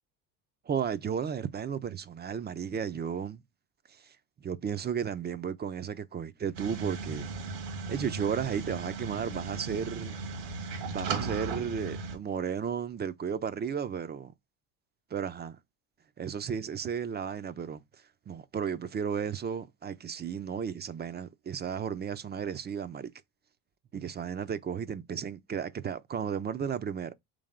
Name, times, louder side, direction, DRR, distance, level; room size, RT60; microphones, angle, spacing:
voice 1, 0.7-3.4 4.0-4.1 4.4-7.3 7.9-10.1 10.8-14.3 15.1-15.6 16.2-17.8 18.3-23.1 23.9-27.1, right 7 dB, 25° right, 0.4 m, -34 dB
sound 1, 6.5-12.2, right 4 dB, 80° right, 1.4 m, -36 dB
3.4 x 3.3 x 3.6 m
hypercardioid pair, 70°, 49 cm